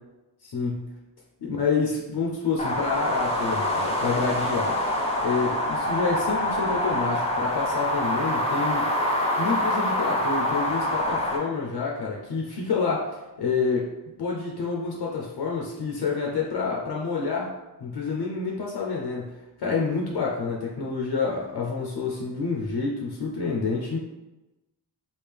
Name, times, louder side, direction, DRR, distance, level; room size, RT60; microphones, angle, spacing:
voice 1, 0.4-0.9 1.4-4.8 5.2-8.9 9.4-13.9 14.2-17.5 17.8-19.3 19.6-24.0, left 4 dB, 65° left, -2 dB, 0.6 m, -28 dB
sound 1, 2.6-11.4, left 1 dB, 15° left, 0.6 m, -26 dB
3.4 x 2.4 x 3.4 m, 1.0 s
wide cardioid pair, 90°, 42 cm